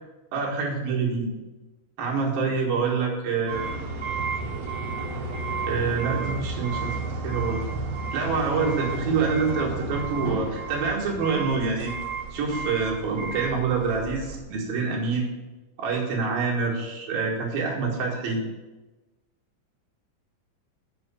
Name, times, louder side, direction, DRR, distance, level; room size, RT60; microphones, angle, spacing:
voice 1, 0.3-1.3 2.0-3.8 5.7-6.9 7.2-7.6 8.1-11.9 12.3-15.3 15.8-18.4, right 4 dB, 60° right, -3 dB, 3.1 m, -26 dB
sound 1, 3.5-14.4, right 3 dB, 90° right, 1.4 m, -32 dB
7.8 x 6.4 x 7.0 m, 1.2 s
omnidirectional pair, 5.3 m